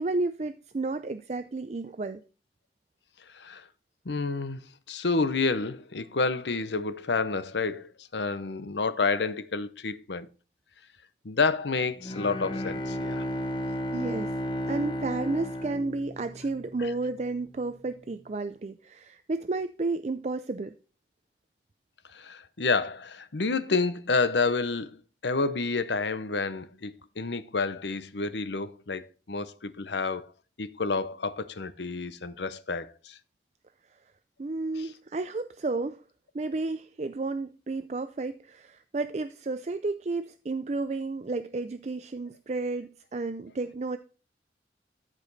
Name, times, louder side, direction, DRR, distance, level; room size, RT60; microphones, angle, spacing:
voice 1, 0.0-2.2 13.9-14.3 14.7-20.8 34.4-36.0 36.3-44.0, right 3 dB, 40° right, 0.4 m, -32 dB
voice 2, 3.3-3.7 4.0-4.6 4.9-10.3 11.2-13.2 16.8-16.9 22.1-30.3 30.6-33.2 34.8-34.9, left 4 dB, 85° left, 0.8 m, -29 dB
Bowed string instrument, 12.0-16.9, equal, 30° left, 0.9 m, -33 dB
13.5 x 5.0 x 4.0 m
head